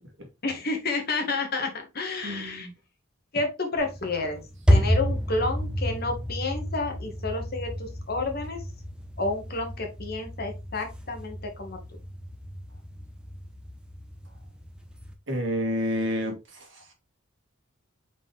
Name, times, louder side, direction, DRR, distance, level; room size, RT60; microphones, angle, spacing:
voice 1, 0.4-2.7 3.3-4.4 4.7-8.6 9.2-11.8, left 3 dB, 50° left, 1.9 m, -30 dB
voice 2, 2.2-2.7 15.3-16.9, equal, 65° right, 2.2 m, -30 dB
sound 1, 3.8-15.1, equal, 5° right, 1.0 m, -30 dB
5.8 x 4.9 x 3.5 m
head